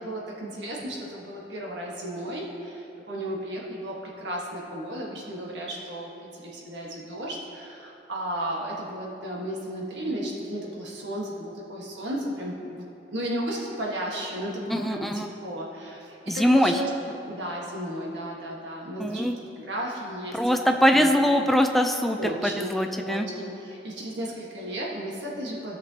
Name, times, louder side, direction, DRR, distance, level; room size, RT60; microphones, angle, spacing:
voice 1, 0.0-20.4 20.9-21.1 22.2-22.8 23.0-25.8, right 1 dB, 80° right, -3 dB, 1.5 m, -34 dB
voice 2, 14.7-15.3 16.3-16.8 19.0-19.4 20.3-23.3, equal, ahead, 4 dB, 0.4 m, -22 dB
17.5 x 6.1 x 2.8 m, 2.9 s
head